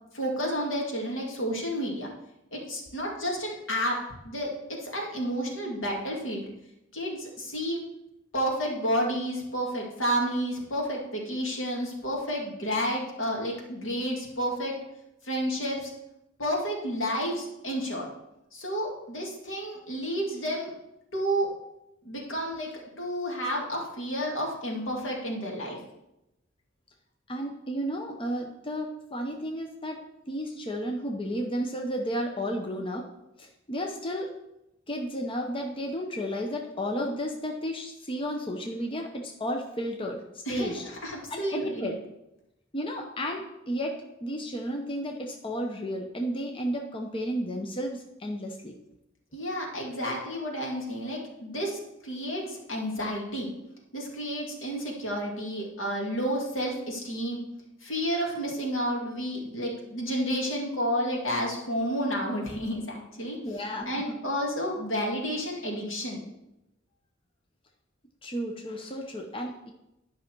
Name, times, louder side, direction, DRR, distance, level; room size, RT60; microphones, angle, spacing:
voice 1, 0.1-2.1 2.5-6.5 6.9-7.8 8.3-14.7 15.2-15.9 16.4-18.1 18.5-20.7 21.1-21.5 22.0-22.7 23.0-25.8 40.5-42.0 49.3-53.5 53.9-57.4 57.8-63.4 63.9-66.2, equal, 80° left, -1 dB, 2.3 m, -31 dB
voice 2, 27.3-33.0 33.4-34.3 34.9-40.2 40.5-40.8 41.3-42.0 42.7-48.8 63.4-64.2 68.2-69.7, equal, 25° left, 2 dB, 0.8 m, -33 dB
11.0 x 5.7 x 4.6 m, 0.89 s
head